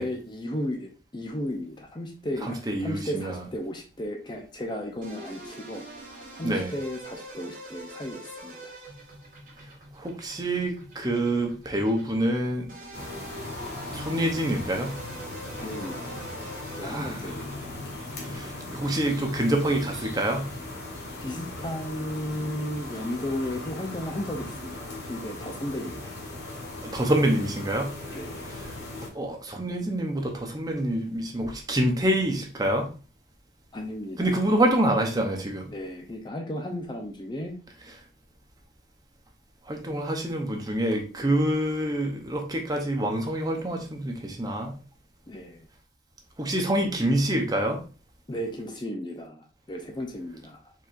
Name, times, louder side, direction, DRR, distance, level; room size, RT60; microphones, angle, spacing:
voice 1, 0.0-5.8 6.4-8.7 15.6-16.3 16.8-17.8 21.2-26.1 28.1-28.5 33.7-34.4 35.7-37.6 41.2-41.4 45.3-45.7 48.3-50.7, left 1 dB, 25° left, 2 dB, 0.6 m, -34 dB
voice 2, 2.4-3.4 6.4-6.7 10.0-12.7 13.9-15.0 16.8-17.2 18.3-20.5 26.8-27.9 29.1-32.9 34.2-35.7 39.7-44.8 46.4-47.8, right 1 dB, 20° right, 2 dB, 0.7 m, -26 dB
sound 1, 5.0-20.4, right 1 dB, 45° right, 1.7 m, -45 dB
sound 2, 12.9-29.1, left 2 dB, 60° left, 1.5 m, -38 dB
4.6 x 4.2 x 2.5 m, 0.36 s
head